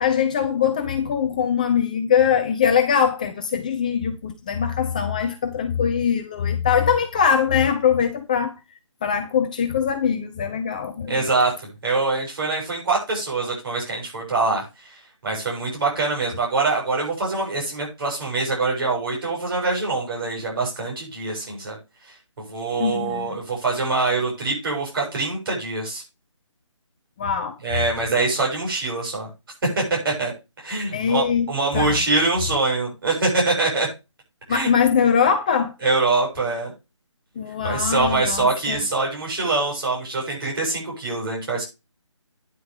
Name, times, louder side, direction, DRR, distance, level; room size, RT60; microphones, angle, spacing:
voice 1, 0.0-8.5 9.0-11.3 22.8-23.4 27.2-27.6 30.9-31.5 31.7-32.0 34.5-35.7 37.4-38.8, left 7 dB, 15° left, 0.5 m, -22 dB
voice 2, 11.1-11.5 11.8-15.0 15.2-21.8 22.5-26.0 27.6-29.3 29.7-30.3 30.6-33.9 34.5-34.7 35.8-36.7 37.6-41.6, right 3 dB, 45° right, 7.0 m, -24 dB
9.8 x 8.7 x 3.4 m
figure-of-eight pair, 160°, 16 cm